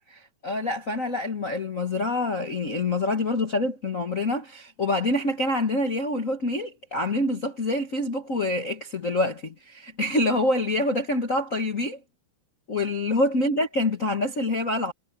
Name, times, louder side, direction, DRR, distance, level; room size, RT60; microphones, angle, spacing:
voice 1, 0.1-12.0 12.7-14.9, left 2 dB, 60° left, 0.8 m, -26 dB
omnidirectional pair, 4.1 m